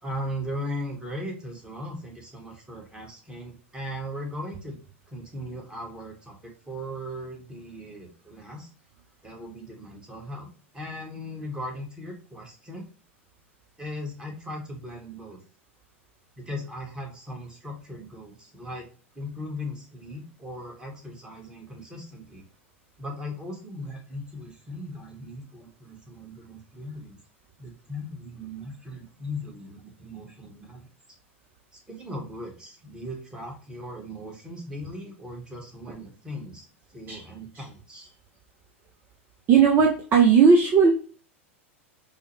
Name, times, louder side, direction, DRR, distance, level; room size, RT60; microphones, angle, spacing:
voice 1, 0.0-4.8 5.1-8.7 9.2-12.8 13.8-15.4 16.4-18.9 19.1-22.4 23.0-27.2 27.6-30.9 31.7-36.7 36.9-38.1, left 1 dB, 10° right, 1 dB, 1.2 m, -38 dB
voice 2, 39.5-40.9, right 6 dB, 30° right, 2 dB, 0.6 m, -17 dB
4.6 x 2.1 x 3.1 m, 0.39 s
figure-of-eight pair, 90°, 7 cm